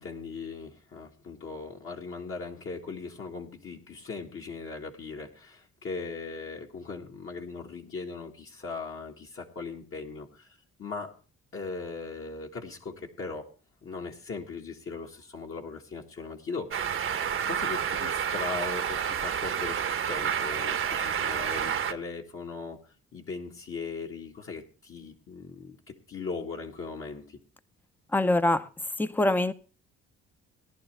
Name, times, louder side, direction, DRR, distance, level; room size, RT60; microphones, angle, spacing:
voice 1, 0.0-11.1 11.5-13.5 13.8-17.0 17.4-22.8 23.1-27.4, left 4 dB, 45° left, 1.7 m, -39 dB
sound 1, 16.7-21.9, right 8 dB, 45° right, 0.9 m, -29 dB
voice 2, 28.1-28.7 29.0-29.5, left 2 dB, 5° left, 0.6 m, -24 dB
18.0 x 11.0 x 3.3 m
cardioid pair, 85°, 29 cm